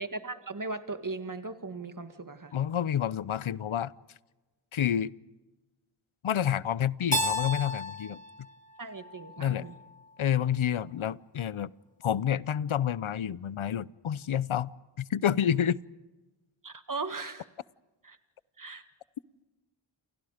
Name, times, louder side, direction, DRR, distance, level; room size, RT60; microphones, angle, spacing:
voice 1, 0.0-2.5 8.8-9.7 16.6-17.4 18.0-18.2 18.6-18.8, right 3 dB, 40° right, 8 dB, 1.9 m, -38 dB
voice 2, 2.5-3.9 4.7-5.1 6.2-8.2 9.4-9.6 10.2-11.7 12.0-15.8, left 9 dB, 75° left, 20 dB, 0.7 m, -29 dB
Keyboard (musical), 7.1-9.9, left 1 dB, 15° left, 2.4 m, -33 dB
28.5 x 28.5 x 5.0 m, 1.2 s
wide cardioid pair, 75°, 48 cm